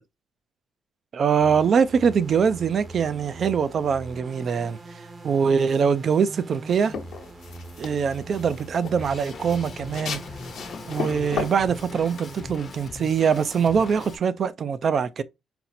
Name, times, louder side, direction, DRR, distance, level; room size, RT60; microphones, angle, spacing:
voice 1, 1.1-4.8 5.2-6.9 7.8-10.2 10.9-15.2, right 6 dB, 55° right, 0.4 m, -23 dB
sound 1, 1.4-12.5, right 2 dB, 35° right, 0.8 m, -42 dB
sound 2, 6.7-13.2, left 6 dB, 70° left, 0.9 m, -36 dB
Drum kit, 9.0-14.2, left 4 dB, 45° left, 0.7 m, -41 dB
4.2 x 2.1 x 4.0 m
cardioid pair, 90°, 0 cm